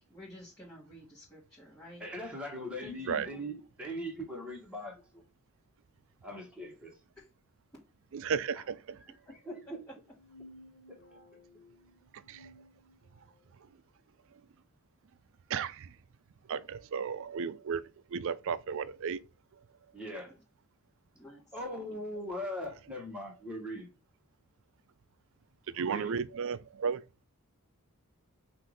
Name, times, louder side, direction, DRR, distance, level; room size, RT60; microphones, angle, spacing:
voice 1, 0.0-2.0 2.8-3.6 7.1-7.3 7.7-7.8 9.1-10.0 20.3-20.4 21.1-22.0, left 1 dB, 15° left, 1.5 m, -52 dB
voice 2, 2.0-5.2 6.2-7.0 9.3-9.8 10.9-11.2 19.9-20.3 21.5-23.9 25.7-26.2, equal, 5° right, 1.4 m, -40 dB
voice 3, 8.1-9.0 12.3-12.5 15.5-15.9 16.5-17.8 18.1-19.2 25.7-27.0, right 6 dB, 60° right, 0.4 m, -34 dB
sound 1, 10.0-13.5, left 1 dB, 60° left, 1.1 m, -57 dB
5.7 x 2.6 x 3.3 m
head